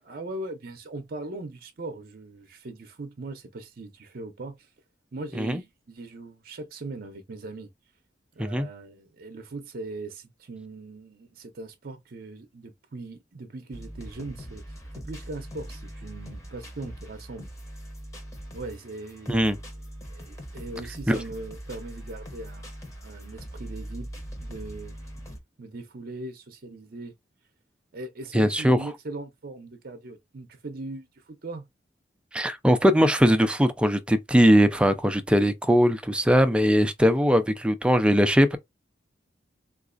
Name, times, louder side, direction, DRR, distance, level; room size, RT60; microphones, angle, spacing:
voice 1, 0.1-4.7 5.1-7.7 8.4-14.7 15.0-17.5 18.5-19.5 20.1-24.1 24.4-24.9 25.6-27.1 27.9-31.7, right 2 dB, 55° right, 0.6 m, -39 dB
sound 1, 13.7-25.4, equal, 15° left, 0.9 m, -41 dB
voice 2, 28.3-28.8 32.3-38.6, equal, 5° right, 0.4 m, -20 dB
3.9 x 2.4 x 2.4 m
head